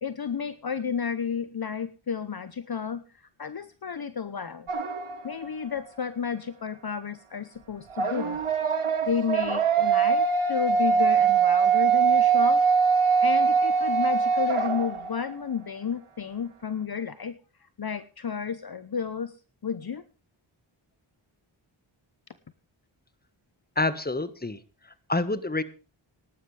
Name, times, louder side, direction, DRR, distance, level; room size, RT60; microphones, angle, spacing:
voice 1, 0.0-4.7 5.2-8.4 9.0-12.6 13.2-17.4 17.8-19.3 19.6-20.0, left 6 dB, 50° left, 13 dB, 0.9 m, -32 dB
sound 1, 4.7-5.5 7.9-15.3, right 6 dB, 85° right, 1.6 m, -23 dB
voice 2, 23.7-25.6, left 2 dB, 20° left, 13 dB, 1.5 m, -28 dB
18.5 x 11.0 x 3.4 m, 0.34 s
cardioid pair, 45°, 49 cm